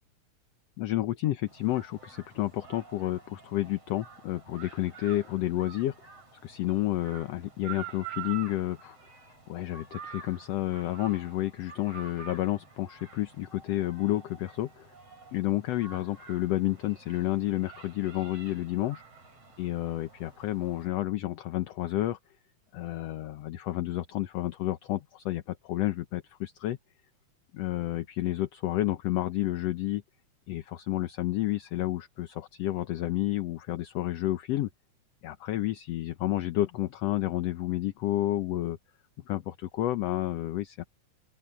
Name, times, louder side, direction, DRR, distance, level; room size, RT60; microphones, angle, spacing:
voice 1, 0.8-6.0 6.4-9.0 9.5-14.9 15.3-19.0 19.6-22.2 22.7-26.8 27.5-30.0 30.5-34.7 35.2-38.8 39.3-40.8, left 15 dB, 70° left, 1.9 m, -30 dB
sound 1, 1.5-20.9, right 8 dB, 55° right, 8.1 m, -48 dB
open air
omnidirectional pair, 3.3 m